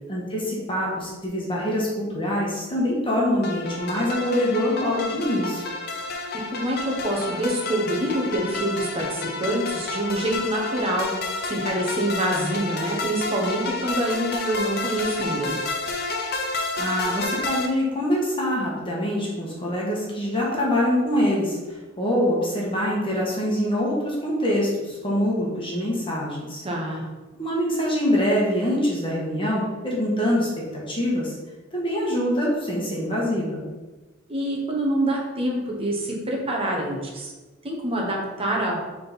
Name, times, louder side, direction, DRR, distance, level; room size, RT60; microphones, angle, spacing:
voice 1, 0.1-5.7 16.8-26.6 27.3-31.3 31.7-33.6, equal, 25° left, -4 dB, 1.5 m, -24 dB
sound 1, 3.4-17.7, left 3 dB, 50° left, 0.8 m, -30 dB
voice 2, 6.3-15.6 26.6-27.0 34.3-37.3 37.6-38.8, right 1 dB, 30° right, -1 dB, 1.3 m, -26 dB
6.5 x 3.9 x 4.2 m, 1.2 s
head